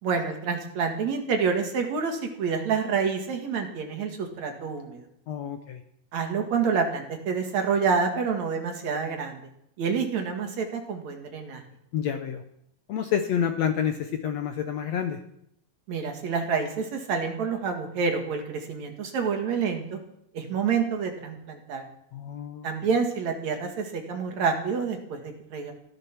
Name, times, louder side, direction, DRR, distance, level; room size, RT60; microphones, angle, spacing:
voice 1, 0.0-5.1 6.1-9.4 9.8-11.6 15.9-20.0 20.3-21.8 22.6-25.7, right 5 dB, 55° right, 4 dB, 3.0 m, -28 dB
voice 2, 5.3-5.8 11.9-12.4 12.9-15.2 22.1-22.7, left 8 dB, 70° left, 6 dB, 1.6 m, -28 dB
15.0 x 13.0 x 6.1 m, 0.75 s
omnidirectional pair, 4.2 m